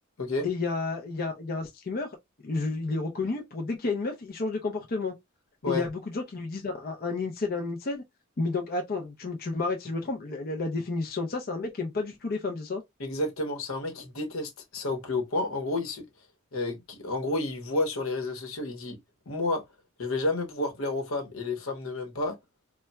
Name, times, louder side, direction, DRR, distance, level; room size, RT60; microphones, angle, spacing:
voice 1, 0.4-2.2 2.4-5.1 5.7-8.0 8.4-12.8, left 3 dB, 45° left, 0.6 m, -31 dB
voice 2, 13.0-16.0 16.5-19.0 19.3-19.6 20.0-22.4, left 2 dB, 80° left, 1.0 m, -30 dB
4.0 x 2.2 x 2.2 m
head